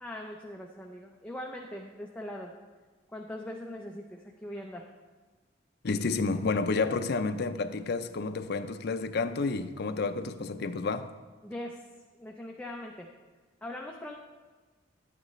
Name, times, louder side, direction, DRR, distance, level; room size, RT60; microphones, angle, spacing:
voice 1, 0.0-2.5 3.1-4.9 11.4-11.8 12.2-13.1 13.6-14.2, left 1 dB, 5° left, 0.5 m, -41 dB
voice 2, 5.8-11.1, left 4 dB, 60° left, 0.5 m, -30 dB
11.5 x 8.9 x 3.1 m
head